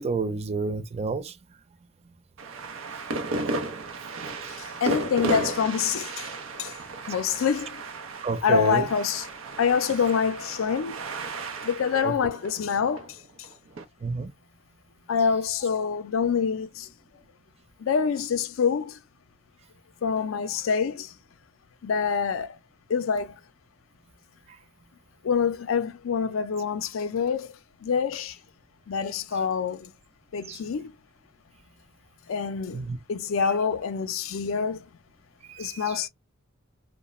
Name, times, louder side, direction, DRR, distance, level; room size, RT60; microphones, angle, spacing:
voice 1, 0.0-1.3 8.2-8.9 12.0-12.1 14.0-14.3 30.5-30.6 32.7-33.0 35.5-36.0, right 4 dB, 30° right, 0.3 m, -29 dB
sound 1, 2.4-13.8, right 2 dB, 85° right, 0.6 m, -34 dB
voice 2, 4.5-6.7 7.1-7.8 8.4-9.3 9.6-11.0 11.6-13.5 15.1-16.9 17.8-19.0 20.0-21.1 21.8-22.6 22.9-23.4 25.2-27.5 27.8-28.4 28.9-29.9 30.3-30.9 32.3-32.8 33.1-34.9 35.6-36.1, left 6 dB, 75° left, 0.4 m, -26 dB
2.3 x 2.1 x 2.9 m
head